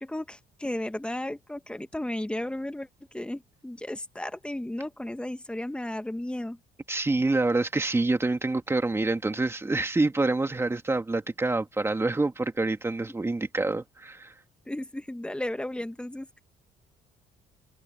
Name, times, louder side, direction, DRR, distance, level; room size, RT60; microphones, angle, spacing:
voice 1, 0.0-6.6 14.7-16.4, left 1 dB, 5° left, 1.5 m, -34 dB
voice 2, 6.9-14.3, right 2 dB, 15° right, 2.3 m, -27 dB
cardioid pair, 110°, 17 cm